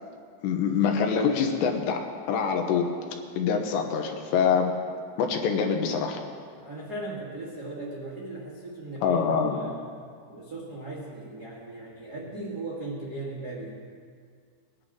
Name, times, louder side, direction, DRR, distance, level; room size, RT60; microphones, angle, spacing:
voice 1, 0.4-2.0 2.3-2.9 3.4-4.7 5.2-6.2 9.0-9.6, left 6 dB, 85° left, 3 dB, 3.3 m, -25 dB
voice 2, 6.6-9.9 10.3-13.8, right 2 dB, 55° right, -5 dB, 1.0 m, -38 dB
21.0 x 10.5 x 3.8 m, 2.1 s
omnidirectional pair, 5.0 m